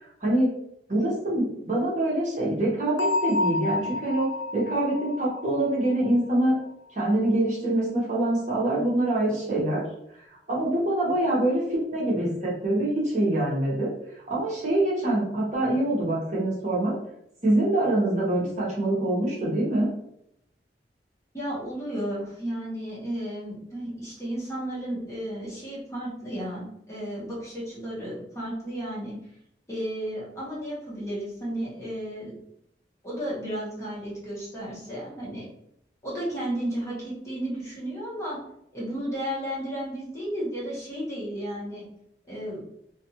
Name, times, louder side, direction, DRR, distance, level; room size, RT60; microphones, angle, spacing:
voice 1, 0.9-4.3 4.5-6.5 6.9-9.8 10.1-13.9 14.3-16.9 17.4-19.9, right 1 dB, 40° right, -5 dB, 0.8 m, -25 dB
Bell, 3.0-6.6, left 2 dB, 90° left, 0.3 m, -30 dB
voice 2, 21.3-29.2 29.7-32.3 33.0-35.4 36.0-38.4 38.7-41.8 42.3-42.6, right 1 dB, 15° left, -7 dB, 0.9 m, -33 dB
2.6 x 2.4 x 2.7 m, 0.76 s
head